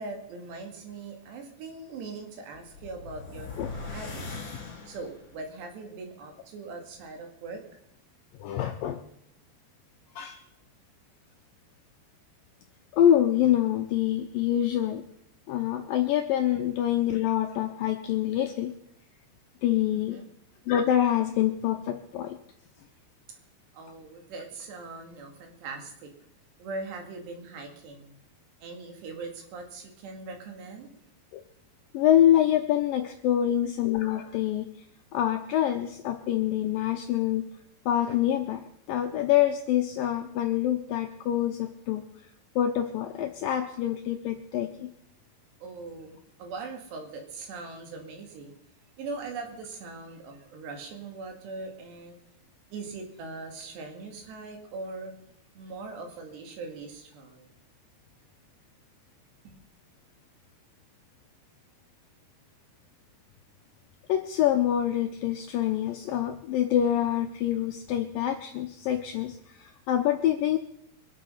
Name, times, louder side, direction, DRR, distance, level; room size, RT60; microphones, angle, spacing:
voice 1, 0.0-3.5 3.9-4.4 4.9-7.6 16.5-16.6 19.9-20.3 23.7-26.1 26.6-28.1 28.6-30.9 45.6-48.5 49.0-52.2 52.7-55.1 55.6-57.5 59.4-59.6, right 3 dB, 75° right, 4 dB, 4.4 m, -41 dB
sound 1, 2.5-5.4, left 4 dB, 40° left, 3.5 m, -40 dB
voice 2, 8.4-9.0 10.2-10.4 12.9-15.0 15.5-18.7 19.6-20.2 20.7-22.4 31.3-31.4 31.9-34.7 35.1-37.4 37.9-38.6 38.9-42.3 42.6-44.9 64.1-70.6, left 11 dB, 85° left, 5 dB, 2.0 m, -26 dB
24.0 x 8.3 x 5.7 m, 0.74 s
omnidirectional pair, 4.9 m